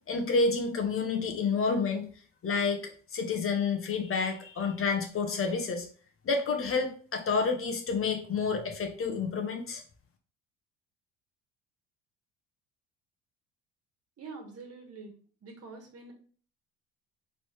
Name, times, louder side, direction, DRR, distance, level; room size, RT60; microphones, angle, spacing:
voice 1, 0.1-2.1 2.4-5.9 6.2-9.8, left 4 dB, 40° left, 4 dB, 0.9 m, -29 dB
voice 2, 14.2-15.1 15.4-16.1, right 4 dB, 45° right, 2 dB, 1.5 m, -45 dB
4.1 x 3.3 x 3.2 m, 0.43 s
hypercardioid pair, 60°, 35 cm